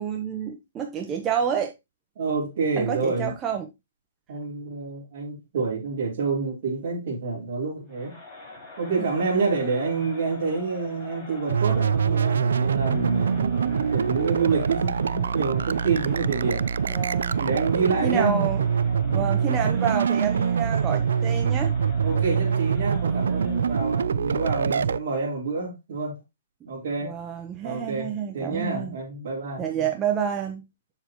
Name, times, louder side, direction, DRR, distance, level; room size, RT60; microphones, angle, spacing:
voice 1, 0.0-1.7 2.8-3.7 9.0-9.1 16.9-17.5 18.0-18.6 19.1-21.7 27.0-29.0 29.6-30.6, right 8 dB, 15° right, 1.0 m, -29 dB
voice 2, 2.2-3.3 4.3-8.2 8.8-16.7 17.4-18.5 19.0-19.3 22.0-26.2 26.6-27.1 27.6-29.8, right 4 dB, 50° right, 4.0 m, -28 dB
Crowd, 7.9-24.0, left 2 dB, 15° left, 5.2 m, -44 dB
sound 1, 11.5-25.0, right 6 dB, 90° right, 0.4 m, -24 dB
8.0 x 7.2 x 3.0 m
hypercardioid pair, 160°, 0 cm